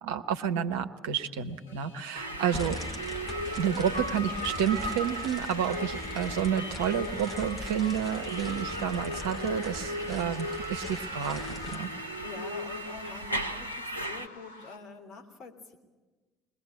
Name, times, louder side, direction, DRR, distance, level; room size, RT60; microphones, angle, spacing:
voice 1, 0.0-2.8 3.6-11.9, right 8 dB, 70° right, 8 dB, 1.0 m, -30 dB
sound 1, 1.4-14.8, left 3 dB, 80° left, 1.3 m, -49 dB
voice 2, 2.1-2.5 3.7-3.9 11.9-15.8, left 4 dB, 50° left, 4 dB, 3.2 m, -46 dB
sound 2, 2.1-14.3, equal, 90° right, 0.8 m, -36 dB
sound 3, 2.5-11.8, left 2 dB, 25° left, 4.4 m, -42 dB
21.5 x 21.0 x 8.5 m, 1.3 s
figure-of-eight pair, 55°, 0 cm